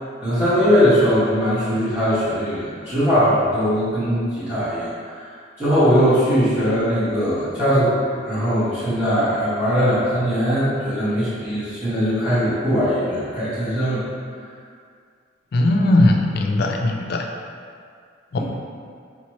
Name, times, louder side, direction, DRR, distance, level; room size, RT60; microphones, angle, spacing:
voice 1, 0.2-14.0 18.3-18.4, equal, 10° right, -17 dB, 1.1 m, -20 dB
voice 2, 15.5-17.3, left 1 dB, 55° left, 2 dB, 0.4 m, -18 dB
4.6 x 2.9 x 3.1 m, 2.2 s
head